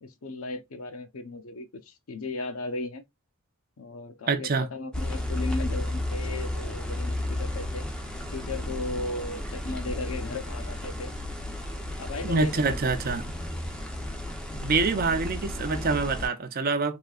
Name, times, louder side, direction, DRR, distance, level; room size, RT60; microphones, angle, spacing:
voice 1, 0.0-3.0 3.8-7.9 8.3-11.1 12.0-12.9, left 2 dB, 75° left, 0.7 m, -36 dB
voice 2, 4.3-4.7 12.2-13.3 14.6-17.0, right 4 dB, 45° right, 0.5 m, -26 dB
sound 1, 4.9-16.3, left 1 dB, 5° left, 0.5 m, -33 dB
3.5 x 2.6 x 2.3 m
head